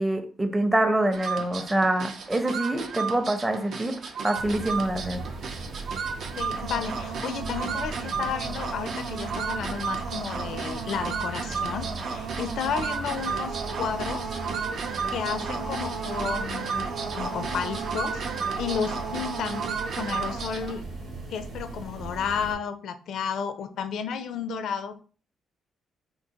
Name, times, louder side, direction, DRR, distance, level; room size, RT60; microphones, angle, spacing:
voice 1, 0.0-4.0 4.2-5.2, right 1 dB, 15° right, 7 dB, 0.6 m, -25 dB
sound 1, 1.1-20.8, right 5 dB, 60° right, 0.5 m, -32 dB
sound 2, 4.3-22.5, right 3 dB, 90° right, 1.1 m, -39 dB
voice 2, 6.4-14.2 15.1-16.9 17.1-18.2 18.6-19.7 20.0-20.8 21.3-25.0, left 7 dB, 70° left, 9 dB, 0.4 m, -32 dB
3.7 x 2.5 x 2.8 m, 0.40 s
cardioid pair, 90°, 0 cm